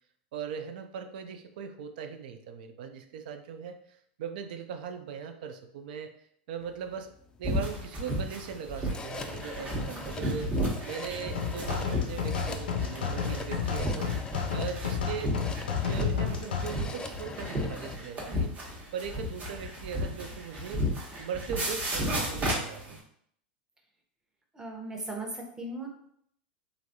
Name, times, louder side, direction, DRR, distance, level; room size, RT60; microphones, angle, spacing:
voice 1, 0.3-3.8 4.2-6.1 6.5-7.1 7.4-10.5 10.9-15.4 15.7-18.5 18.9-23.0, right 7 dB, 70° right, 7 dB, 0.3 m, -39 dB
sound 1, 6.6-18.0, left 3 dB, 15° left, 0.3 m, -43 dB
sound 2, 7.4-23.0, equal, 30° right, 1.0 m, -33 dB
sound 3, 11.3-16.7, left 7 dB, 85° left, 0.4 m, -31 dB
voice 2, 24.5-25.9, right 2 dB, 10° right, 0 dB, 0.8 m, -37 dB
3.1 x 2.5 x 2.7 m, 0.67 s
hypercardioid pair, 100°, 5 cm